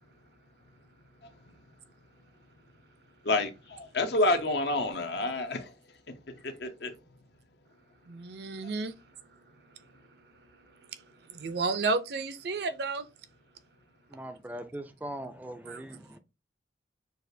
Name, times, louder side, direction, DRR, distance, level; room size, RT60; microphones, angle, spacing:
voice 1, 3.3-5.6 6.4-6.9, left 2 dB, 65° left, 0.7 m, -28 dB
voice 2, 8.1-13.1 15.7-15.8, right 3 dB, 60° right, 0.5 m, -34 dB
voice 3, 14.1-16.2, right 1 dB, 10° right, 0.3 m, -41 dB
6.2 x 2.4 x 2.6 m
head